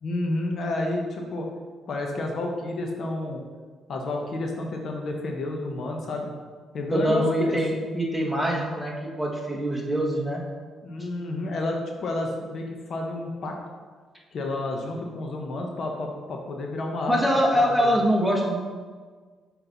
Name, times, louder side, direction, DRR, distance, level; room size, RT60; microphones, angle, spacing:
voice 1, 0.0-1.5 1.9-3.4 3.9-6.3 6.7-7.6 10.8-13.5 14.3-17.3 17.6-18.0, left 2 dB, 60° left, 1 dB, 0.8 m, -30 dB
voice 2, 6.9-10.4 17.1-18.6, equal, ahead, -2 dB, 1.3 m, -24 dB
5.8 x 4.2 x 3.9 m, 1.5 s
cardioid pair, 90°, 0 cm